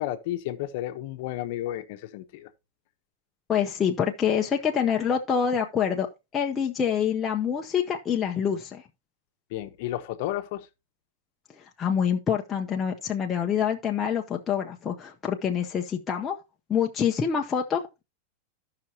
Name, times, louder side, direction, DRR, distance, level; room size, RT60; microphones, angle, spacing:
voice 1, 0.0-2.5 9.5-10.7, left 14 dB, 45° left, 0.8 m, -32 dB
voice 2, 3.5-8.8 11.8-16.4 16.7-18.0, left 7 dB, 15° left, 0.5 m, -26 dB
14.0 x 5.8 x 2.8 m
supercardioid pair, 175°, 0 cm